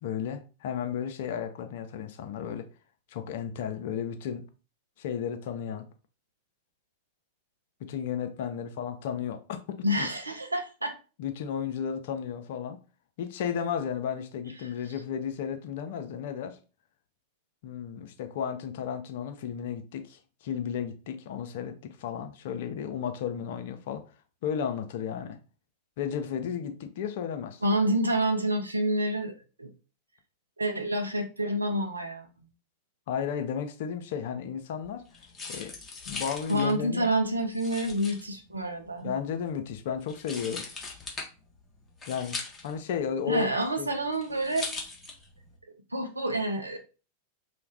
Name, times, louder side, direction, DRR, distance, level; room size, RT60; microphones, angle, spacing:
voice 1, 0.0-2.7 3.1-4.5 5.0-5.9 7.8-10.1 11.2-12.8 13.2-16.6 17.6-24.0 24.4-25.4 26.0-27.6 33.1-35.0 35.5-35.7 36.1-37.1 39.0-40.7 42.1-43.9, left 8 dB, 55° left, 0.4 m, -33 dB
voice 2, 9.8-10.9 27.6-29.7 30.6-32.3 36.5-39.1 43.3-44.7 45.9-46.8, right 1 dB, 80° right, 0.5 m, -28 dB
sound 1, 34.8-45.6, left 3 dB, 20° left, 0.7 m, -41 dB
2.4 x 2.1 x 3.3 m
figure-of-eight pair, 90°, 0 cm